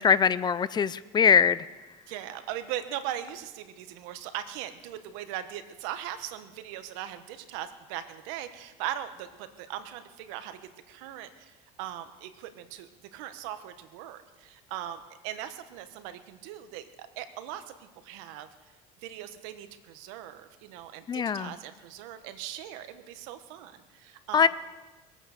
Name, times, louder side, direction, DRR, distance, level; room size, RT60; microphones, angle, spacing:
voice 1, 0.0-1.6 21.1-21.5 24.3-24.5, left 7 dB, 25° left, 17 dB, 0.5 m, -22 dB
voice 2, 2.1-10.6 10.9-18.5 19.0-24.5, right 11 dB, 85° right, 10 dB, 1.2 m, -39 dB
22.5 x 8.9 x 6.6 m, 1.2 s
cardioid pair, 125°, 17 cm